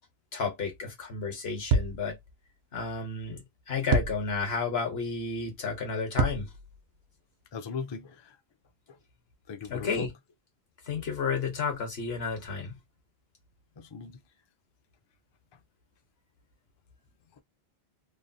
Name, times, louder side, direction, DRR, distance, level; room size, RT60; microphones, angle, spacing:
voice 1, 0.3-2.2 2.7-6.5 9.7-10.1 10.9-12.8, left 5 dB, 75° left, 1.3 m, -32 dB
sound 1, 0.7-0.8 1.7-2.3 3.9-4.7 6.1-7.0, right 4 dB, 80° right, 0.9 m, -28 dB
voice 2, 7.5-8.4 8.9-9.0 9.5-10.1 13.8-14.2, left 5 dB, 40° left, 0.3 m, -38 dB
3.1 x 2.2 x 2.6 m
omnidirectional pair, 1.1 m